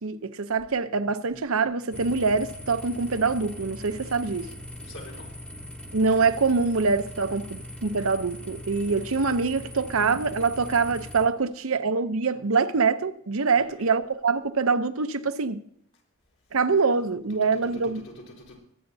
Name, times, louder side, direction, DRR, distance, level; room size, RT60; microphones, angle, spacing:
voice 1, 0.0-4.5 5.9-15.6 16.5-18.0, right 4 dB, 80° right, 0.8 m, -24 dB
sound 1, 1.9-11.3, left 1 dB, 5° left, 1.0 m, -40 dB
voice 2, 4.4-5.3 13.5-13.9 17.8-18.6, left 1 dB, 75° left, 4.4 m, -46 dB
22.0 x 9.1 x 2.8 m
head